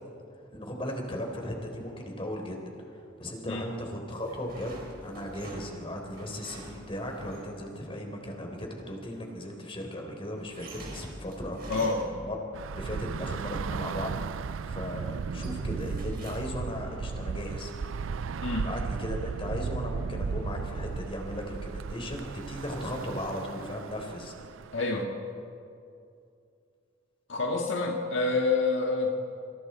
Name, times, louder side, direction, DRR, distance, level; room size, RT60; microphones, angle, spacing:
voice 1, 0.5-2.6 2.9-11.7 12.0-12.4 12.8-17.7 18.6-24.3, equal, 30° left, 2 dB, 3.8 m, -37 dB
sound 1, 4.1-7.6 10.4-12.4 13.9-14.5 14.9-16.8, right 1 dB, 50° right, 5.1 m, -46 dB
voice 2, 11.7-12.1 18.4-18.7 24.7-25.2 27.3-29.2, left 3 dB, 65° left, 0 dB, 1.9 m, -28 dB
Bus / Traffic noise roadway noise, 12.5-25.0, right 5 dB, 85° right, 0.4 m, -35 dB
27.5 x 26.0 x 4.4 m, 2.5 s
head